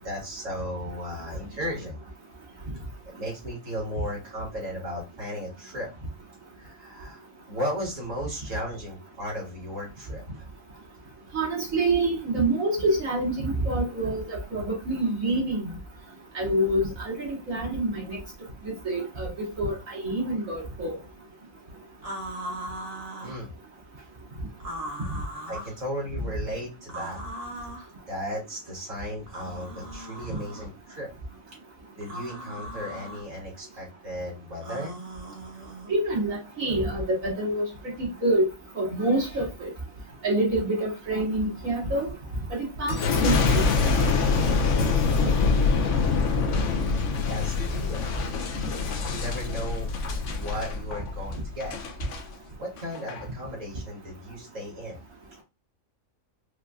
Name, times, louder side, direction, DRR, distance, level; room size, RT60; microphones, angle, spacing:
voice 1, 0.0-2.0 3.1-5.9 6.6-10.4 23.2-23.5 25.5-27.2 28.1-31.1 31.9-34.9 45.1-45.3 47.3-48.0 49.0-49.9 50.2-51.8 52.6-55.0 55.4-55.5, equal, 70° right, 2.2 m, -35 dB
voice 2, 11.3-15.7 16.3-18.2 18.8-21.0 35.9-37.6 38.2-38.5 38.8-39.7 40.2-42.1 42.8-43.6 45.5-45.6, right 1 dB, 90° right, 2.1 m, -26 dB
sound 1, 22.0-23.4 24.6-25.8 26.9-27.9 29.3-30.7 32.0-33.2 34.6-35.9, right 1 dB, 35° right, 0.8 m, -38 dB
Boom, 42.9-52.2 52.8-53.2, left 4 dB, 70° left, 1.1 m, -25 dB
4.9 x 2.5 x 2.2 m
omnidirectional pair, 1.4 m